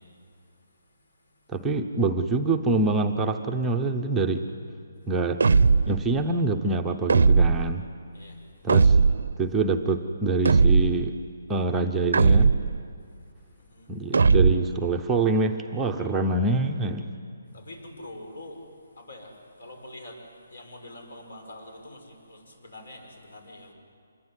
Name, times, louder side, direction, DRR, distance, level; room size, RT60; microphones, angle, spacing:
voice 1, 1.5-4.4 5.1-5.4 5.9-7.8 8.6-9.0 9.4-11.1 11.5-12.6 13.9-17.1, right 3 dB, 5° right, 1 dB, 0.6 m, -25 dB
sound 1, 5.4-6.0 7.1-7.8 8.7-9.3 10.4-11.1 12.1-12.8 14.1-14.8, right 4 dB, 70° right, 0.6 m, -19 dB
voice 2, 17.5-18.6 19.0-19.3 19.6-20.2 20.5-23.7, left 1 dB, 70° left, 4 dB, 6.4 m, -44 dB
26.5 x 22.0 x 9.8 m, 2.4 s
hypercardioid pair, 175°, 0 cm